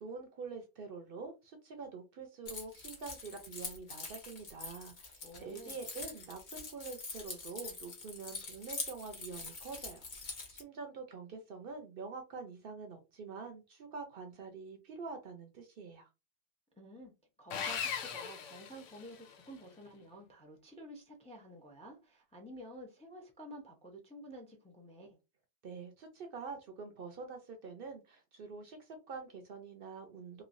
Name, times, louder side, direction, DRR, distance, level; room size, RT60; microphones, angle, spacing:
voice 1, 0.0-16.1 25.6-30.4, right 4 dB, 60° right, 0.7 m, -46 dB
Keys jangling, 2.5-10.6, left 3 dB, 45° left, 0.9 m, -44 dB
voice 2, 5.2-5.8 16.8-17.1 17.4-25.2, equal, 10° left, 0.4 m, -51 dB
Sawing, 17.5-19.4, left 7 dB, 85° left, 0.9 m, -39 dB
3.0 x 2.3 x 2.5 m
omnidirectional pair, 1.2 m